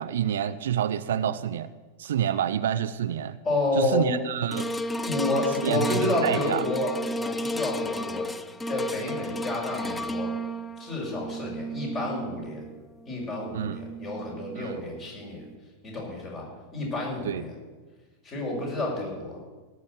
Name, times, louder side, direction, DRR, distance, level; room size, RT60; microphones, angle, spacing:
voice 1, 0.0-1.7 2.0-3.4 3.8-4.7 5.6-6.6 13.5-13.8 14.6-14.8 17.2-17.4, right 10 dB, 60° right, 14 dB, 0.5 m, -28 dB
voice 2, 3.4-4.1 5.0-8.3 8.7-10.3 10.8-12.7 13.1-15.4 15.8-16.5 16.7-17.5 18.2-19.4, left 2 dB, 30° left, -2 dB, 6.2 m, -30 dB
sound 1, 4.5-14.9 15.5-15.6, equal, 10° left, 0.5 m, -33 dB
17.5 x 6.7 x 8.3 m, 1.3 s
figure-of-eight pair, 90°, 0 cm